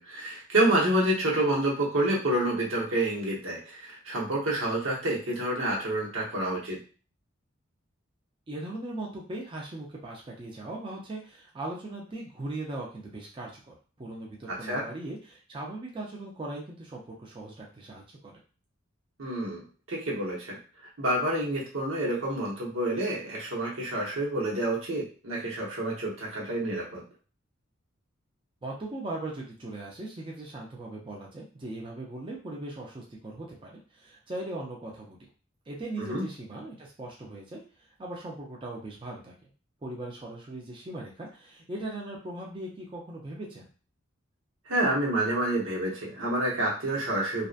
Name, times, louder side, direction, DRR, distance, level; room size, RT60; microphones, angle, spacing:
voice 1, 0.0-6.8 14.5-14.9 19.2-19.6 19.9-20.6 21.0-27.0 36.0-36.2 44.7-47.5, right 1 dB, 85° right, -4 dB, 1.0 m, -28 dB
voice 2, 8.5-18.3 28.6-35.2 35.7-37.6 38.0-39.3 39.8-43.7, right 2 dB, 25° right, -2 dB, 0.5 m, -39 dB
2.6 x 2.2 x 2.4 m, 0.37 s
head